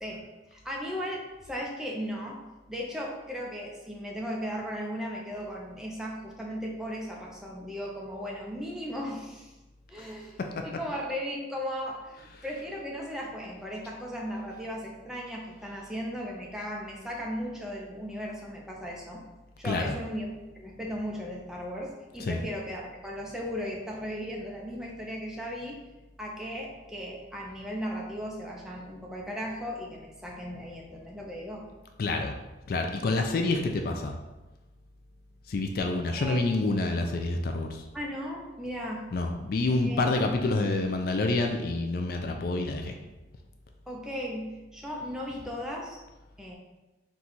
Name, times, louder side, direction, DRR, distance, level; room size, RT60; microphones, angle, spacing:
voice 1, 0.0-2.4 2.7-9.5 9.9-19.2 19.6-20.3 20.5-25.8 26.2-31.6 36.2-36.4 37.9-39.1 39.8-40.1 43.9-46.0 46.4-46.6, equal, 5° right, -3 dB, 0.6 m, -36 dB
voice 2, 19.6-19.9 22.2-22.4 32.0-32.3 32.7-34.2 35.5-37.9 39.1-42.9, left 2 dB, 55° left, 4 dB, 0.4 m, -28 dB
4.0 x 2.4 x 4.4 m, 1.1 s
head